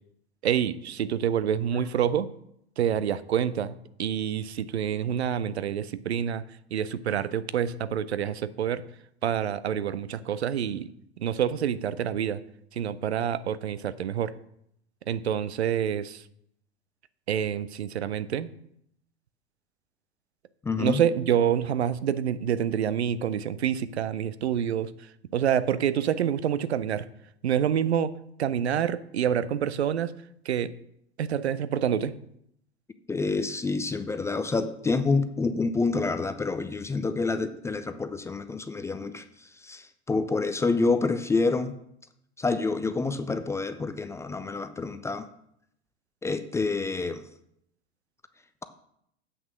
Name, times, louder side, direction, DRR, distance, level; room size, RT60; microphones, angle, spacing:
voice 1, 0.4-2.3 2.8-6.4 6.7-8.8 9.2-10.9 11.2-12.4 12.7-14.4 15.1-16.2 17.3-18.5 20.8-24.9 25.3-27.1 27.4-28.1 28.4-30.1 30.5-30.7 31.2-32.1, right 9 dB, 75° right, 16 dB, 0.6 m, -27 dB
voice 2, 20.6-21.0 33.1-41.8 42.4-45.3 46.2-47.3, left 3 dB, 10° left, 10 dB, 0.4 m, -28 dB
8.0 x 6.1 x 6.1 m, 0.74 s
figure-of-eight pair, 90°, 33 cm